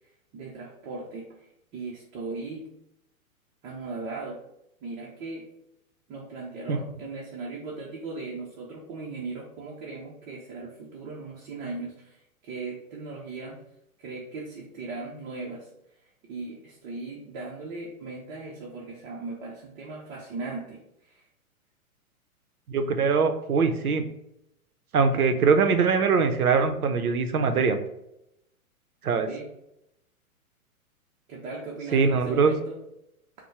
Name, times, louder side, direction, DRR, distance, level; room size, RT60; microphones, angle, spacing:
voice 1, 0.3-2.7 3.6-4.4 4.8-5.5 6.1-13.6 14.0-15.7 16.3-21.3 29.3-29.5 31.3-32.8, right 3 dB, 30° right, -2 dB, 0.7 m, -38 dB
voice 2, 22.7-24.1 24.9-27.8 29.0-29.3 31.9-32.5, right 5 dB, 90° right, 7 dB, 0.7 m, -22 dB
4.2 x 2.2 x 4.5 m, 0.82 s
hypercardioid pair, 120°, 43 cm